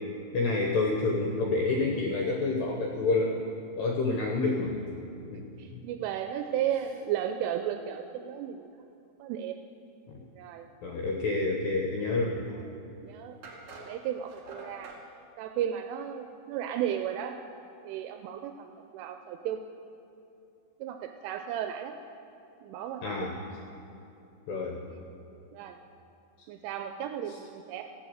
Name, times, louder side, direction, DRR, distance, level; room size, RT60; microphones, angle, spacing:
voice 1, 0.3-3.4 3.8-4.8 5.3-5.8 10.1-10.2 10.8-12.4 23.0-23.3 24.5-24.8, left 3 dB, 75° left, 0 dB, 2.6 m, -28 dB
voice 2, 5.6-8.7 9.2-9.6 10.4-10.7 13.0-13.4 13.9-14.9 15.4-17.4 17.8-19.7 20.8-22.0 22.6-23.3 24.9-25.0 25.5-25.8 26.5-27.8, right 10 dB, 85° right, 6 dB, 2.9 m, -34 dB
sound 1, 13.4-15.0, right 2 dB, 50° right, 2.4 m, -46 dB
14.5 x 9.0 x 7.7 m, 2.7 s
omnidirectional pair, 5.9 m